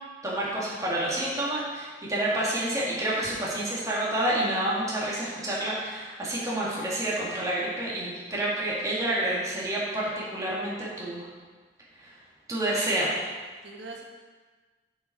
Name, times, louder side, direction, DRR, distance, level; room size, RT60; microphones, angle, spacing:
voice 1, 0.2-11.3 12.0-12.2 12.5-13.1, right 1 dB, 20° right, -7 dB, 2.1 m, -29 dB
voice 2, 13.6-14.0, right 3 dB, 80° right, 0 dB, 1.3 m, -42 dB
7.5 x 7.0 x 4.2 m, 1.4 s
head